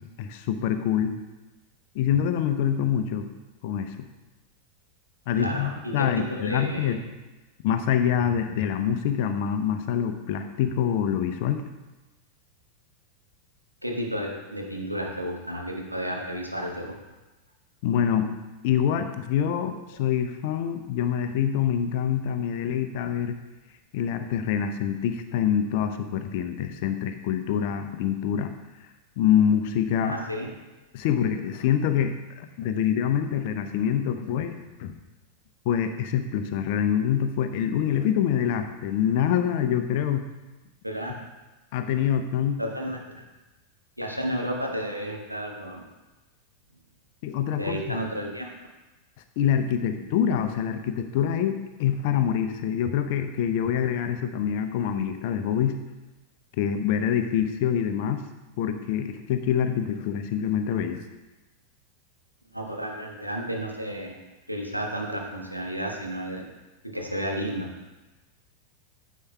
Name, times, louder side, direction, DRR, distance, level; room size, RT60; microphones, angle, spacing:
voice 1, 0.2-1.1 1.9-3.3 3.6-4.1 5.3-7.0 7.6-11.6 17.8-18.3 18.6-23.4 23.9-28.5 29.2-30.2 30.9-34.9 35.7-40.3 41.7-42.6 47.2-48.0 49.4-51.5 51.8-55.8 56.6-58.2 58.6-61.0, left 9 dB, 50° left, 8 dB, 0.6 m, -25 dB
voice 2, 5.3-7.0 13.8-16.9 30.1-30.5 40.8-41.2 42.6-43.2 44.0-45.9 47.5-48.5 49.9-50.1 62.5-64.2 64.5-66.5 66.8-67.7, equal, 90° right, 0 dB, 1.1 m, -32 dB
9.7 x 7.4 x 2.3 m, 1.1 s
figure-of-eight pair, 90°, 0 cm